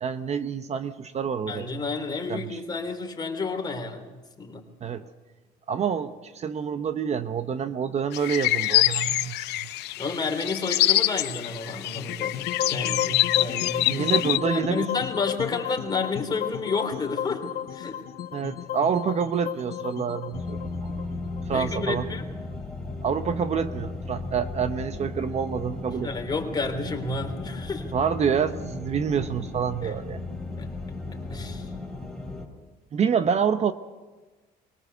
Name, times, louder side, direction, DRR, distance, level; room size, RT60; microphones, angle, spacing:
voice 1, 0.0-1.7 2.3-2.6 4.8-5.0 5.7-9.7 13.9-14.9 18.3-20.9 21.5-22.1 23.0-26.1 27.9-30.2 32.9-33.7, right 7 dB, 40° right, 11 dB, 0.8 m, -27 dB
voice 2, 1.5-4.1 4.4-4.6 10.0-14.1 14.4-17.4 17.7-18.0 21.5-22.2 26.0-27.9 29.8-29.9 30.6-30.7 31.3-31.7, left 4 dB, 25° left, 3 dB, 3.1 m, -31 dB
sound 1, 8.1-14.4, left 16 dB, 80° left, 0.6 m, -25 dB
sound 2, 12.0-22.2, left 10 dB, 60° left, 1.0 m, -33 dB
sound 3, 20.3-32.5, left 2 dB, ahead, 3.5 m, -35 dB
21.5 x 18.5 x 6.8 m, 1.2 s
cardioid pair, 110°, 17 cm